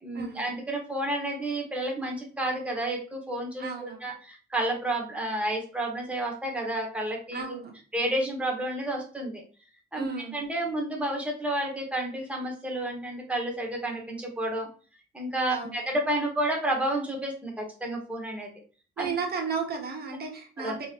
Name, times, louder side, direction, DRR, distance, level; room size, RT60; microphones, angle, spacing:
voice 1, 0.0-7.4 7.9-9.4 9.9-10.1 10.3-14.7 15.1-18.5 19.0-19.1 20.6-20.8, right 1 dB, 5° right, 0 dB, 1.1 m, -30 dB
voice 2, 3.6-4.0 7.3-7.7 9.9-10.4 15.5-15.8 19.0-20.9, right 5 dB, 50° right, 1 dB, 1.2 m, -33 dB
3.9 x 3.0 x 2.5 m, 0.39 s
cardioid pair, 90°, 20 cm